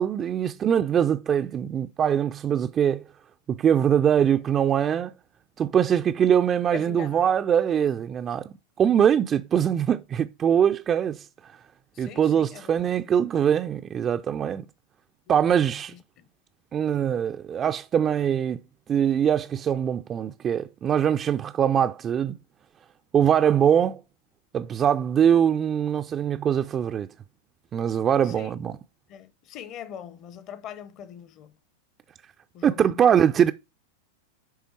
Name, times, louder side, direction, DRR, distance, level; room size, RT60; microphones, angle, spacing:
voice 1, 0.0-3.0 3.5-5.1 5.6-11.2 12.0-14.6 15.3-15.9 16.7-18.6 18.9-22.4 23.1-24.0 24.5-27.1 27.7-28.8 32.6-33.5, right 8 dB, 25° right, 0.4 m, -22 dB
voice 2, 6.7-7.3 11.9-12.9 15.3-15.4 15.9-16.3 28.2-28.6 29.1-31.5 32.5-33.2, left 9 dB, 35° left, 0.8 m, -42 dB
9.3 x 3.4 x 4.5 m
figure-of-eight pair, 95°, 0 cm